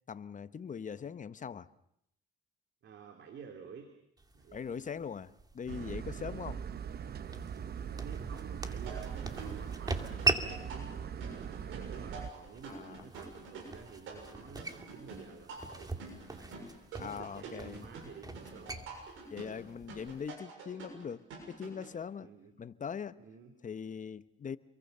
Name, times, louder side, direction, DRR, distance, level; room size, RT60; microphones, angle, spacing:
voice 1, 0.1-1.7 4.5-6.6 12.7-13.1 17.0-17.8 19.3-22.3 22.6-23.2 23.6-24.6, left 7 dB, 40° left, 1.1 m, -41 dB
voice 2, 2.8-3.9 4.3-4.9 6.1-6.4 7.6-18.9 22.2-22.5 23.2-23.5, right 6 dB, 70° right, 3.3 m, -52 dB
sound 1, 4.2-20.3, right 3 dB, 20° right, 2.4 m, -41 dB
sound 2, 5.7-12.3, right 8 dB, 50° right, 0.9 m, -41 dB
sound 3, 8.9-21.9, right 4 dB, 85° right, 7.0 m, -48 dB
28.5 x 22.5 x 6.8 m
cardioid pair, 90°, 20 cm